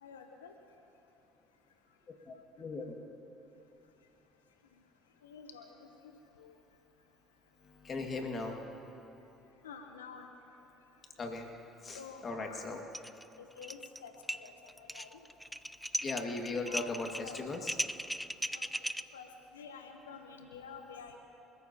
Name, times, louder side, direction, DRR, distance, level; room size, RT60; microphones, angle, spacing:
voice 1, 0.0-0.5 5.2-5.7 6.4-6.5 9.6-10.3 11.9-12.6 13.4-14.1 14.4-14.5 14.8-15.2 16.7-16.9 17.2-17.4 18.5-18.7 19.1-19.3 19.5-21.2, left 6 dB, 90° left, 5 dB, 0.9 m, -49 dB
voice 2, 2.3-3.0 7.8-8.6 11.2-11.5 11.8-12.8 16.0-17.7, left 3 dB, 40° left, 2 dB, 2.0 m, -38 dB
sound 1, 12.9-13.2 13.5-14.0 14.3-19.0, equal, ahead, 0.5 m, -37 dB
26.0 x 14.0 x 2.9 m, 3.0 s
hypercardioid pair, 65°, 0 cm